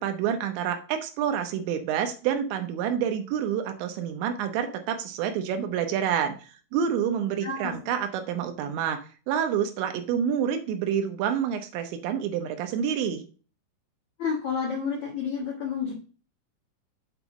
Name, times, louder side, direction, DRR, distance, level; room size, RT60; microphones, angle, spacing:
voice 1, 0.0-6.3 6.7-13.2, right 8 dB, 80° right, 7 dB, 2.6 m, -28 dB
voice 2, 7.4-7.7 14.2-15.9, left 6 dB, 75° left, -2 dB, 1.6 m, -30 dB
7.9 x 3.8 x 6.0 m, 0.38 s
omnidirectional pair, 6.0 m